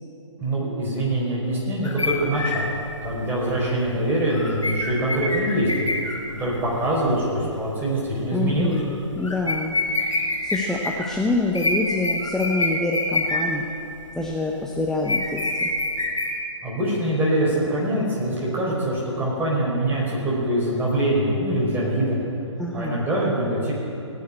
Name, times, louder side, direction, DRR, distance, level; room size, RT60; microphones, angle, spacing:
voice 1, 0.4-2.7 3.0-5.9 6.3-8.7 16.6-22.2 22.7-23.7, right 1 dB, 10° right, -5 dB, 5.0 m, -24 dB
sound 1, 1.8-7.1 7.5-7.7 8.5-8.9 9.2-11.1 11.5-13.6 14.0-14.4 15.0-16.3, left 2 dB, 85° left, 4.9 m, -27 dB
voice 2, 8.3-13.7 14.1-15.7 22.6-23.0, left 2 dB, 5° left, 0 dB, 0.7 m, -26 dB
19.0 x 7.4 x 9.8 m, 2.8 s
hypercardioid pair, 140°, 16 cm